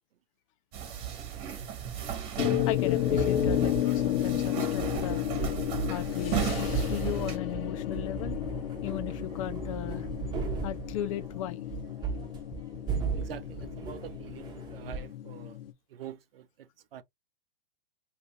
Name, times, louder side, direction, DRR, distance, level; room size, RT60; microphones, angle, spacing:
sound 1, 0.7-7.4, right 9 dB, 35° right, 1.3 m, -35 dB
sound 2, 2.4-15.7, left 13 dB, 75° left, 0.8 m, -32 dB
voice 1, 2.7-5.3 5.9-8.4 8.8-10.1 10.6-11.6, left 11 dB, 35° left, 0.4 m, -36 dB
sound 3, 5.4-15.1, right 5 dB, 15° right, 0.7 m, -37 dB
voice 2, 13.1-15.6 15.9-17.0, right 10 dB, 75° right, 0.7 m, -45 dB
2.9 x 2.8 x 3.1 m
hypercardioid pair, 140°, 29 cm